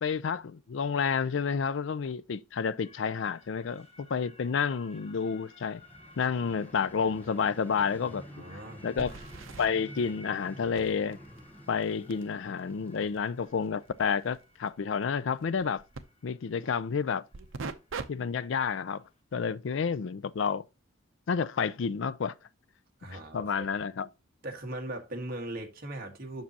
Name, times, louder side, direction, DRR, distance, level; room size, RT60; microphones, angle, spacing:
voice 1, 0.0-5.8 6.2-8.2 8.8-9.2 9.6-11.2 11.7-15.8 16.2-17.2 18.1-19.0 19.3-20.6 21.3-22.3 23.3-24.1, left 6 dB, 65° left, 0.4 m, -30 dB
long gone siren, 2.8-19.2, left 2 dB, 30° left, 1.3 m, -57 dB
Vehicle, 5.5-14.4, equal, 10° left, 0.8 m, -50 dB
sound 1, 7.2-7.3 7.6-7.7 9.0-9.7 10.7-16.0 17.3-18.1 18.5-18.8 23.4-23.5 24.4-24.5, right 4 dB, 80° right, 0.7 m, -44 dB
voice 2, 8.1-8.8 23.0-23.7 24.4-26.4, right 1 dB, 50° right, 1.5 m, -39 dB
7.3 x 6.0 x 2.8 m
head